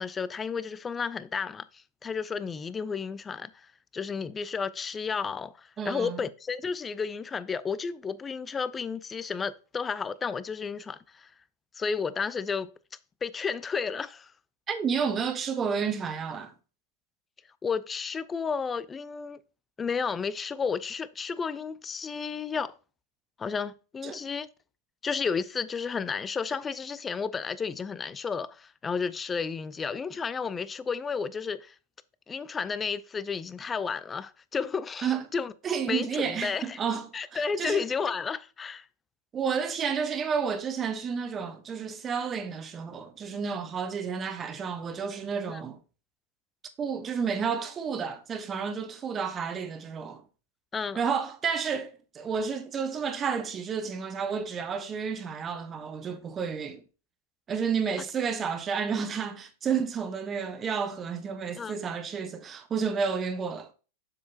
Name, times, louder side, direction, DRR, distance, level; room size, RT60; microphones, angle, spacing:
voice 1, 0.0-1.6 2.0-3.5 3.9-5.5 5.8-11.3 11.8-12.7 13.2-14.3 17.6-19.4 19.8-22.7 23.4-24.5 25.0-31.7 32.3-35.5 35.9-36.8 37.1-38.8 45.5-45.6 50.7-51.0 61.6-61.8, left 5 dB, 20° left, 0.5 m, -32 dB
voice 2, 5.8-6.2 14.7-16.5 24.0-24.2 35.0-35.2 35.6-37.8 39.3-45.8 46.8-50.2 51.0-56.8 57.5-63.7, right 6 dB, 25° right, 1.0 m, -31 dB
7.4 x 6.5 x 2.8 m
hypercardioid pair, 100°, 0 cm